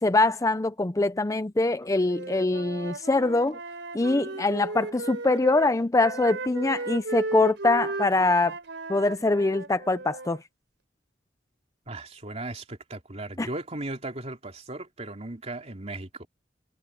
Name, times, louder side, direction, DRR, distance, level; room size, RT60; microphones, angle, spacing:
voice 1, 0.0-3.6 3.9-8.5 8.9-10.4 13.4-13.5, left 2 dB, 20° left, 0.5 m, -23 dB
Wind instrument woodwind instrument, 2.0-5.7 6.0-10.4, right 3 dB, 85° right, 3.8 m, -35 dB
voice 2, 11.9-16.3, right 2 dB, 35° right, 3.1 m, -37 dB
head